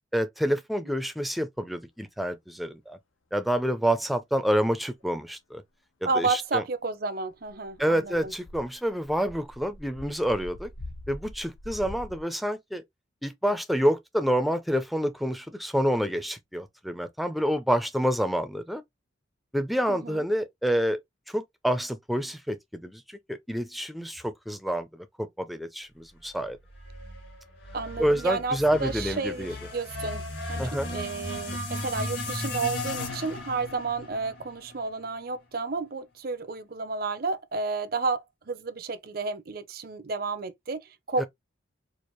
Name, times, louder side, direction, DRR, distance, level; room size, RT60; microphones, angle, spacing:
voice 1, 0.1-3.0 3.3-5.6 6.0-6.6 7.8-10.7 11.1-12.8 13.2-18.8 19.5-21.0 21.3-26.6 28.0-29.5 30.6-30.9 41.2-41.3, equal, ahead, 0.4 m, -28 dB
voice 2, 6.0-8.3 19.9-20.2 27.7-30.2 30.5-41.2, right 4 dB, 50° right, 0.6 m, -31 dB
sound 1, 7.4-12.2, left 1 dB, 90° left, 0.9 m, -44 dB
sound 2, 26.8-35.1, left 2 dB, 60° left, 2.6 m, -36 dB
4.6 x 2.5 x 3.0 m
head